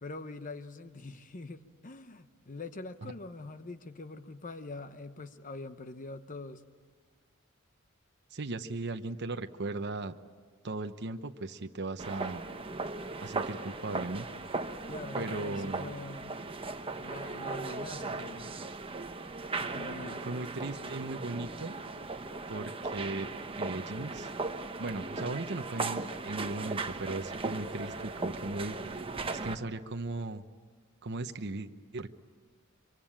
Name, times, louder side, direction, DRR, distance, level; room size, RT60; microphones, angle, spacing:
voice 1, 0.0-6.6 14.9-16.3 17.0-18.5 19.6-20.2, left 3 dB, 40° left, 10 dB, 0.9 m, -44 dB
voice 2, 8.3-10.1 10.6-12.4 13.2-14.3 15.1-15.8 20.2-21.7 22.5-23.3 23.6-24.3 24.8-29.0 29.3-30.4 31.0-32.1, right 2 dB, 55° right, 7 dB, 0.9 m, -37 dB
sound 1, 12.0-29.5, right 3 dB, 25° right, 1.0 m, -37 dB
24.5 x 24.0 x 8.9 m, 1.5 s
head